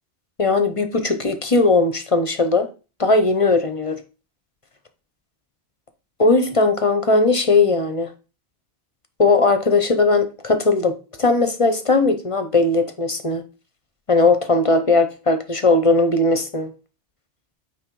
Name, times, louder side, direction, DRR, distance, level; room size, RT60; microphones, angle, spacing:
voice 1, 0.4-2.7 3.0-4.0 6.2-8.1 9.2-10.9 11.2-13.4 14.1-16.7, left 3 dB, 35° left, 0.8 m, -18 dB
8.9 x 3.2 x 4.6 m
omnidirectional pair, 1.2 m